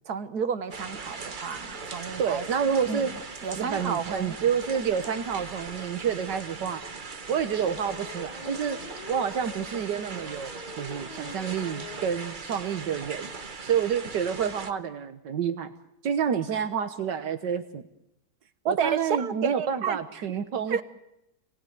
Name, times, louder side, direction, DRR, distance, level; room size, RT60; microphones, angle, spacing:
voice 1, 0.1-2.4 2.9-3.1 3.4-4.4 18.7-20.0 20.7-20.8, right 6 dB, 65° right, 12 dB, 1.8 m, -31 dB
sound 1, 0.7-14.7, right 4 dB, 30° right, 1.3 m, -40 dB
voice 2, 2.2-3.1 3.6-6.8 7.3-8.8 9.1-13.3 13.6-15.7 16.0-17.8 18.7-20.8, right 7 dB, 80° right, 9 dB, 1.8 m, -28 dB
sound 2, 6.6-6.7 7.8-12.1 12.5-12.6 12.8-12.9 13.1-13.4, left 3 dB, 30° left, 1.2 m, -45 dB
28.5 x 20.0 x 9.4 m, 0.85 s
omnidirectional pair, 1.8 m